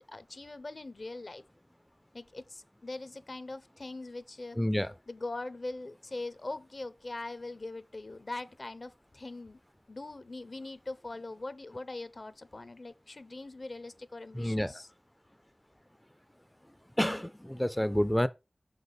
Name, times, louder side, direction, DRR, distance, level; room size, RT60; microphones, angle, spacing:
voice 1, 0.0-1.4 2.1-4.6 5.1-9.6 9.9-14.9, left 2 dB, 60° left, 0.6 m, -42 dB
voice 2, 4.5-5.0 14.3-14.7 17.0-18.3, equal, 10° left, 0.3 m, -29 dB
6.1 x 3.9 x 5.1 m
wide cardioid pair, 50°, 0 cm